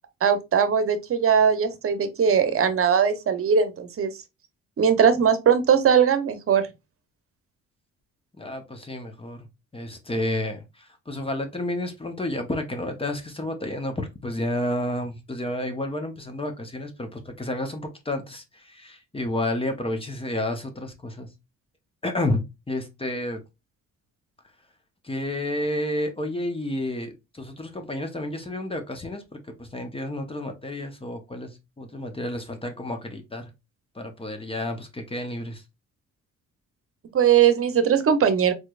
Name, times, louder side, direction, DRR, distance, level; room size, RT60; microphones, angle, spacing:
voice 1, 0.2-4.1 4.8-6.7 37.1-38.5, right 7 dB, 45° right, 0.9 m, -20 dB
voice 2, 8.4-9.5 9.7-21.3 22.0-23.4 25.0-33.5 33.9-35.6, left 1 dB, 20° left, 1.0 m, -31 dB
4.3 x 3.2 x 2.4 m
cardioid pair, 90°, 30 cm